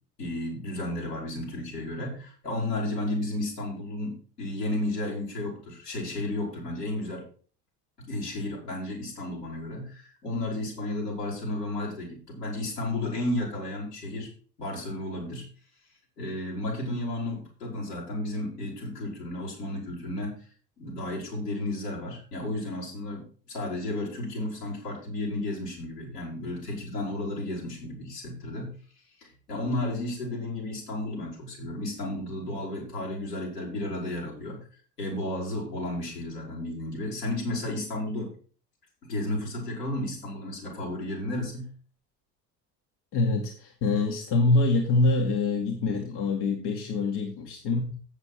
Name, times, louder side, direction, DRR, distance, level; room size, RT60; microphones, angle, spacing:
voice 1, 0.2-7.2 8.1-14.3 14.6-15.5 16.2-20.3 20.8-28.7 29.2-34.6 35.0-38.3 39.0-41.7, left 1 dB, 80° left, -4 dB, 3.9 m, -33 dB
voice 2, 43.1-47.9, left 3 dB, 55° left, 1 dB, 1.7 m, -25 dB
8.2 x 6.7 x 5.8 m, 0.42 s
figure-of-eight pair, 55°, 48 cm